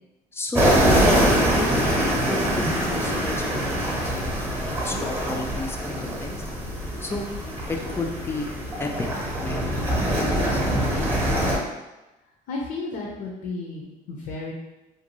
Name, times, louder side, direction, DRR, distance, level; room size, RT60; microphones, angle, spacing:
voice 1, 0.3-0.8 1.5-1.8 2.3-6.4 7.0-7.3 7.7-8.5 8.8-9.1 9.4-9.6 10.1-11.1, left 2 dB, 15° left, 2 dB, 0.3 m, -32 dB
sound 1, 0.5-11.6, equal, 15° right, 0.7 m, -24 dB
voice 2, 12.5-14.5, left 3 dB, 75° left, -3 dB, 0.6 m, -33 dB
2.6 x 2.2 x 3.0 m, 1.0 s
cardioid pair, 110°, 17 cm